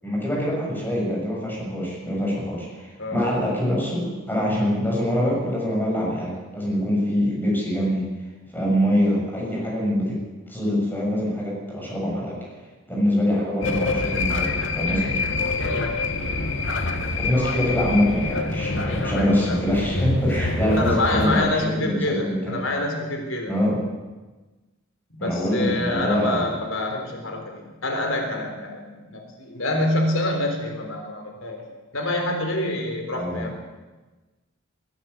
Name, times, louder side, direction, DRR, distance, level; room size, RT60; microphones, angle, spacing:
voice 1, 0.0-8.1 8.5-12.4 12.9-15.2 17.2-22.6 23.4-23.9 25.2-26.5 33.1-33.5, equal, 10° left, -3 dB, 7.3 m, -24 dB
sound 1, 13.6-21.5, left 3 dB, 70° left, 2.1 m, -26 dB
voice 2, 15.6-16.0 20.7-23.5 25.1-31.6 31.9-33.5, left 2 dB, 90° left, 3 dB, 3.8 m, -26 dB
20.5 x 15.0 x 8.4 m, 1.2 s
head